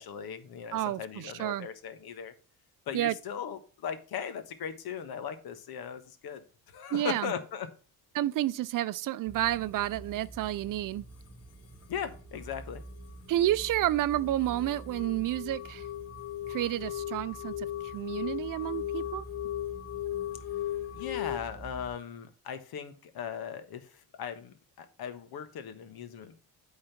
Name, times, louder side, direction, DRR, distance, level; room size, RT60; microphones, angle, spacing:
voice 1, 0.0-2.3 2.9-7.7 11.9-12.8 20.9-26.4, left 7 dB, 65° left, 1.4 m, -38 dB
voice 2, 0.7-1.7 2.9-3.1 6.9-7.3 8.1-11.0 13.3-15.9 16.5-19.3, right 14 dB, 55° right, 0.5 m, -30 dB
sound 1, 9.3-22.0, right 2 dB, 25° right, 1.3 m, -48 dB
sound 2, 13.0-21.4, left 13 dB, 40° left, 0.7 m, -37 dB
8.6 x 4.0 x 5.8 m
cardioid pair, 95°, 39 cm